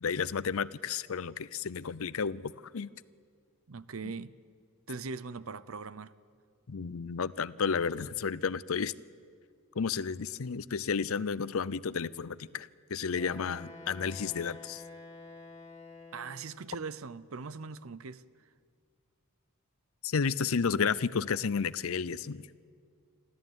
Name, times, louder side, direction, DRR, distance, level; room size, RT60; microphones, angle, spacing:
voice 1, 0.0-2.9 6.7-8.9 9.8-14.8 20.0-22.7, left 6 dB, 70° left, 0.6 m, -32 dB
voice 2, 3.7-4.3 4.9-6.1 16.1-18.3, right 4 dB, 70° right, 0.7 m, -40 dB
Wind instrument woodwind instrument, 13.1-16.6, left 2 dB, 20° left, 3.5 m, -49 dB
28.0 x 13.5 x 9.2 m
head